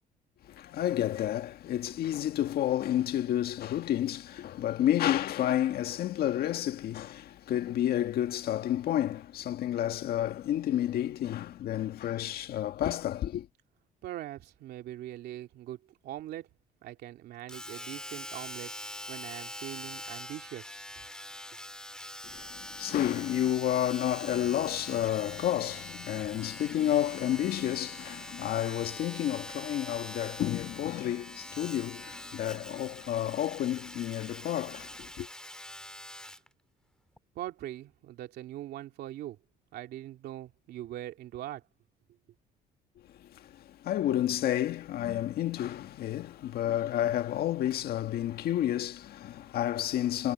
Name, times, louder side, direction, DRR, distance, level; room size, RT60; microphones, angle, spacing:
voice 1, 0.4-13.5 22.3-35.3 43.2-50.3, left 12 dB, 65° left, 1.8 m, -30 dB
voice 2, 14.0-15.8 16.0-16.5 16.8-18.7 19.1-21.0 37.3-39.4 39.7-41.6, right 13 dB, 75° right, 3.0 m, -41 dB
Domestic sounds home sounds, 17.5-36.5 37.2-37.3, left 1 dB, 5° left, 1.9 m, -44 dB
cardioid pair, 110°, 17 cm